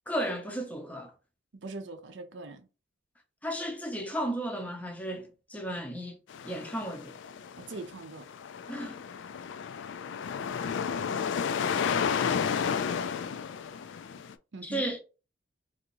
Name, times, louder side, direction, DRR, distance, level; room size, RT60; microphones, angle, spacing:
voice 1, 0.1-1.1 3.4-6.2 6.4-7.2 8.7-9.0 14.6-15.0, right 1 dB, 5° left, 0.6 m, -34 dB
voice 2, 1.6-2.7 7.6-8.3 14.5-14.9, right 2 dB, 60° right, 0.6 m, -41 dB
soft waves, 6.3-14.3, left 7 dB, 65° left, 0.3 m, -32 dB
3.5 x 2.6 x 2.9 m
head